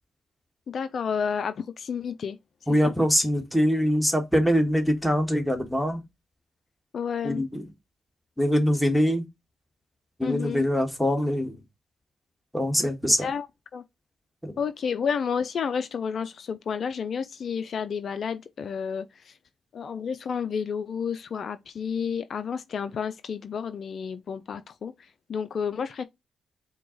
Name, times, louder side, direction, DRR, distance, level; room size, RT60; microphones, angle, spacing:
voice 1, 0.7-2.4 2.8-2.9 6.9-7.5 10.2-10.7 13.2-13.5 13.7-13.8 14.6-19.4 19.7-26.0, left 6 dB, 60° left, 0.4 m, -31 dB
voice 2, 2.7-6.0 7.2-7.6 8.4-9.2 10.2-11.5 12.5-13.3 14.4-14.5, equal, ahead, 1.4 m, -23 dB
4.5 x 2.3 x 3.8 m
supercardioid pair, 55°, 0 cm